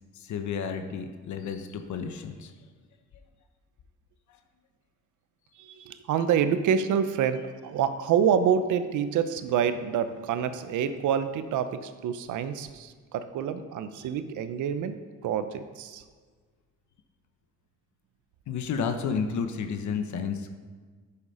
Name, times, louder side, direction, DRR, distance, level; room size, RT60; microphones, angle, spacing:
voice 1, 0.1-2.5 18.5-20.5, left 6 dB, 70° left, 6 dB, 1.1 m, -31 dB
voice 2, 5.6-14.9 15.2-16.0, right 8 dB, 80° right, 11 dB, 0.8 m, -27 dB
9.8 x 7.0 x 5.5 m, 1.5 s
cardioid pair, 90°, 30 cm